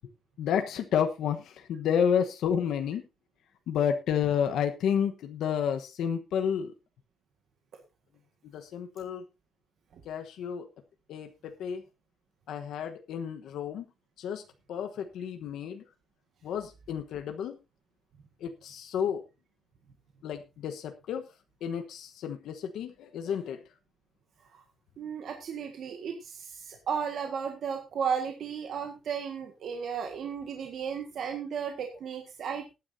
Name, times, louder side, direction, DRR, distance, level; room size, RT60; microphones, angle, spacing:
voice 1, 0.4-3.0 3.7-6.7 8.5-9.2 10.0-10.7 11.1-11.8 12.5-13.8 14.2-14.4 14.7-15.8 16.4-17.6 18.4-19.2 20.2-21.2 21.6-23.6, left 8 dB, 90° left, 6 dB, 1.2 m, -30 dB
voice 2, 25.0-32.7, right 7 dB, 60° right, 4 dB, 1.7 m, -34 dB
19.5 x 9.8 x 2.7 m, 0.26 s
cardioid pair, 175°, 0 cm